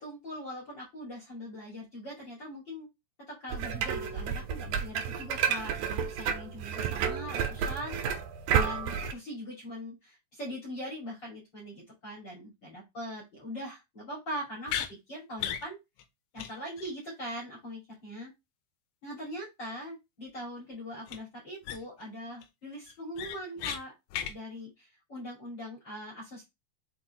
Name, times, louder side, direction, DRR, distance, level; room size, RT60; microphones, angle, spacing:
voice 1, 0.0-2.9 3.3-8.0 8.5-15.8 16.3-18.3 19.0-23.9 24.3-26.4, equal, 30° left, -4 dB, 2.4 m, -41 dB
sound 1, 3.5-9.1, right 7 dB, 75° right, 2.3 m, -31 dB
sound 2, 14.7-14.9 15.4-15.7 16.0-16.1 16.4-16.5 16.8-16.9 21.1-21.2 21.6-22.0 22.4-22.5 22.9-23.8 24.1-24.3, left 10 dB, 80° left, 2.7 m, -35 dB
6.7 x 4.6 x 3.0 m, 0.22 s
omnidirectional pair, 5.2 m